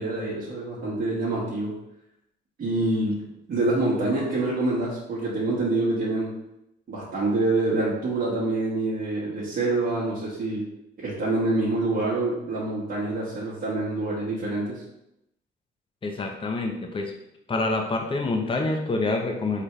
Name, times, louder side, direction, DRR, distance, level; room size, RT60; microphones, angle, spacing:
voice 1, 0.0-1.8 2.6-6.3 6.9-10.7 11.0-14.8, right 2 dB, 50° right, -9 dB, 1.5 m, -26 dB
voice 2, 16.0-17.1 17.5-19.6, left 2 dB, 25° left, 3 dB, 0.7 m, -27 dB
4.4 x 3.5 x 3.2 m, 0.82 s
cardioid pair, 90°, 20 cm